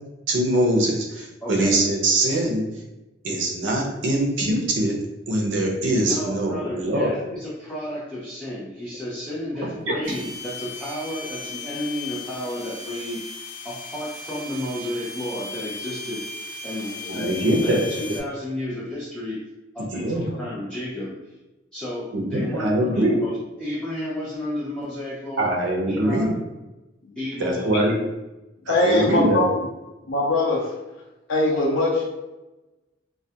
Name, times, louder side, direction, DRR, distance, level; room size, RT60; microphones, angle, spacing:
voice 1, 0.3-2.6 3.2-5.0 5.3-7.1 17.1-17.9 19.9-20.2 22.1-23.2 25.4-26.3 27.4-27.9 28.7-29.4, right 1 dB, 70° right, 0 dB, 0.6 m, -22 dB
voice 2, 1.4-1.8 6.1-13.4 13.6-19.4 19.7-21.3 21.7-25.5 25.8-26.3 27.2-27.8 29.0-29.2, left 1 dB, 5° left, -9 dB, 0.4 m, -32 dB
sound 1, 10.0-18.2, left 3 dB, 40° left, 0.8 m, -36 dB
voice 3, 28.7-29.6 30.1-30.7 31.3-32.1, left 2 dB, 90° left, -3 dB, 0.4 m, -21 dB
2.3 x 2.1 x 2.7 m, 1.0 s
head